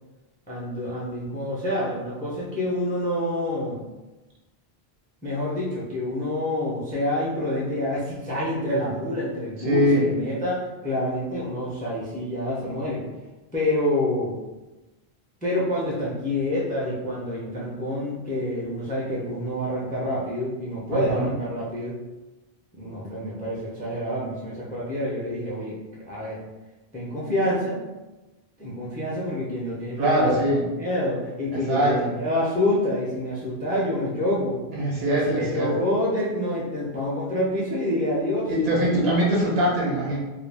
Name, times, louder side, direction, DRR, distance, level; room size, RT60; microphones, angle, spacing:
voice 1, 0.5-3.8 5.2-13.0 13.5-14.4 15.4-21.9 22.7-25.8 26.1-26.4 26.9-27.8 28.6-30.5 30.8-34.6 35.1-38.5, left 1 dB, 10° left, -6 dB, 0.4 m, -27 dB
voice 2, 9.6-10.1 20.9-21.3 30.0-30.7 31.5-32.1 34.7-35.7 38.5-40.2, equal, 70° right, -4 dB, 1.0 m, -22 dB
2.3 x 2.2 x 3.3 m, 1.1 s
omnidirectional pair, 1.1 m